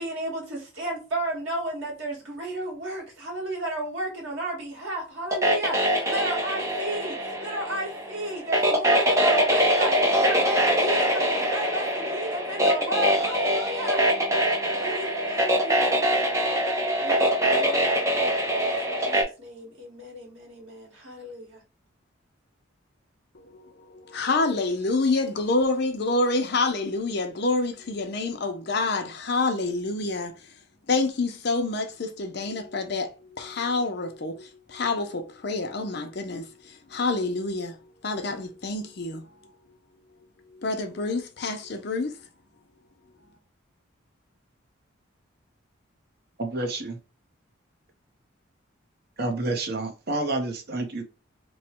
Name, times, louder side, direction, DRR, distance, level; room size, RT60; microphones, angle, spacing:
voice 1, 0.0-14.0 14.8-16.3 17.0-21.6, right 1 dB, 85° right, 1.6 m, -33 dB
sound 1, 5.3-19.2, equal, 15° right, 0.6 m, -23 dB
voice 2, 23.3-30.5 30.9-37.8 38.0-39.5 40.5-42.2, left 3 dB, 55° left, 0.6 m, -28 dB
voice 3, 46.4-47.0 49.2-51.0, right 2 dB, 50° right, 0.7 m, -29 dB
3.1 x 2.2 x 4.3 m
head